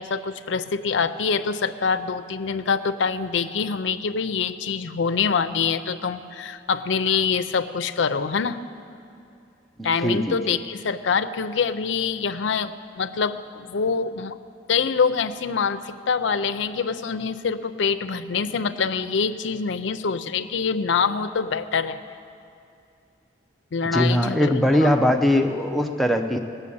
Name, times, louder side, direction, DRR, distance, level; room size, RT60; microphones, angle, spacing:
voice 1, 0.0-8.6 9.8-14.4 14.7-22.0 23.7-25.0, left 5 dB, 75° left, 11 dB, 0.5 m, -25 dB
voice 2, 9.8-10.6 23.9-26.4, left 1 dB, ahead, 4 dB, 0.5 m, -21 dB
17.0 x 6.9 x 8.5 m, 2.6 s
head